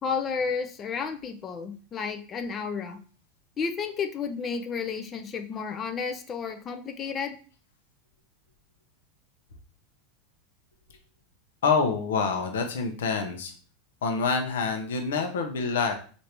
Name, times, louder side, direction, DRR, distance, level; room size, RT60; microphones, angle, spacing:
voice 1, 0.0-3.0 3.6-7.4, left 5 dB, 30° left, 6 dB, 0.4 m, -32 dB
voice 2, 11.6-13.5 14.0-15.9, left 5 dB, 90° left, 4 dB, 0.6 m, -26 dB
3.3 x 2.6 x 2.9 m, 0.40 s
supercardioid pair, 130°, 0 cm